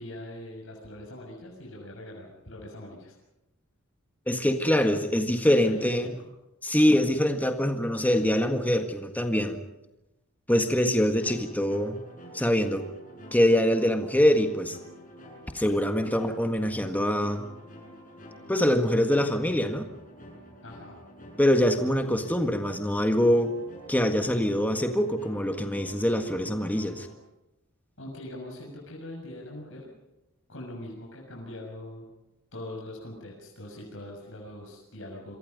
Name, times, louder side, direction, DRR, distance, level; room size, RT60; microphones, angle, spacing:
voice 1, 0.0-3.1 5.4-6.1 20.6-21.0 28.0-29.9 30.5-32.1 32.5-35.4, left 1 dB, 65° left, -1 dB, 6.6 m, -42 dB
voice 2, 4.3-6.1 6.6-9.6 10.5-12.0 12.3-12.8 13.3-14.8 15.5-17.4 18.5-19.8 21.4-23.5 23.9-27.1, equal, 10° left, 5 dB, 1.7 m, -24 dB
sound 1, 11.2-27.1, equal, 40° left, 7.5 m, -48 dB
27.5 x 24.0 x 5.4 m, 0.96 s
head